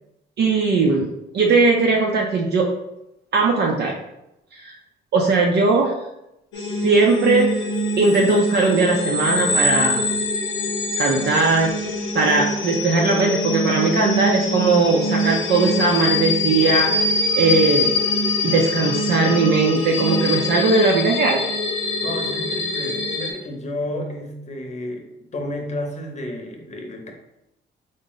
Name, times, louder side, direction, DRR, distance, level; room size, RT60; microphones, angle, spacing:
voice 1, 0.4-2.7 3.3-4.0 4.5-4.8 5.1-5.9 6.6-7.5 8.0-10.0 11.0-17.0 17.4-17.9 18.4-21.4, right 3 dB, 60° right, -1 dB, 0.5 m, -19 dB
sound 1, 6.5-23.3, left 1 dB, 80° left, 0.7 m, -23 dB
voice 2, 21.8-27.1, left 1 dB, 35° left, 2 dB, 0.8 m, -31 dB
3.7 x 2.1 x 3.9 m, 0.88 s
cardioid pair, 90°, 20 cm